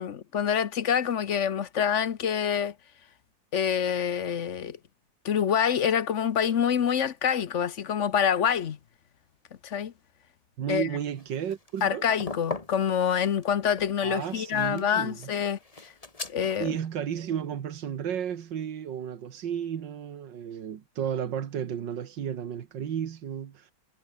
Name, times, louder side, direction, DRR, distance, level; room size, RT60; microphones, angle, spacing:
voice 1, 0.0-2.7 3.5-4.8 5.2-8.8 9.6-9.9 10.7-10.9 11.8-15.6 16.3-16.8, left 8 dB, 50° left, 1.1 m, -26 dB
voice 2, 10.6-12.1 14.0-15.3 16.6-23.7, right 9 dB, 90° right, 2.1 m, -33 dB
sound 1, 11.2-16.6, left 3 dB, 20° left, 1.7 m, -41 dB
omnidirectional pair, 1.9 m